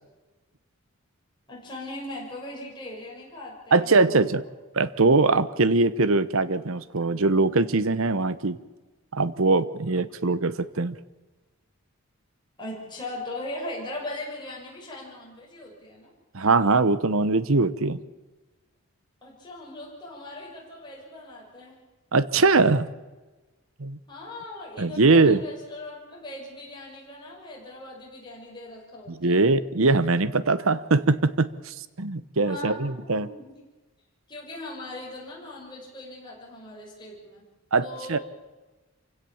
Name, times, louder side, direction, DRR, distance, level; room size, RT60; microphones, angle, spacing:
voice 1, 1.5-4.5 12.6-16.1 19.2-21.8 24.1-29.4 32.4-33.5 34.3-37.4 37.8-38.2, left 1 dB, 20° left, -3 dB, 6.0 m, -39 dB
voice 2, 3.7-4.4 4.7-8.6 9.1-10.9 16.3-18.0 22.1-22.9 23.8-24.0 24.8-25.4 29.1-33.3 37.7-38.2, right 3 dB, 70° right, 15 dB, 0.9 m, -22 dB
26.5 x 17.0 x 7.2 m, 1.2 s
head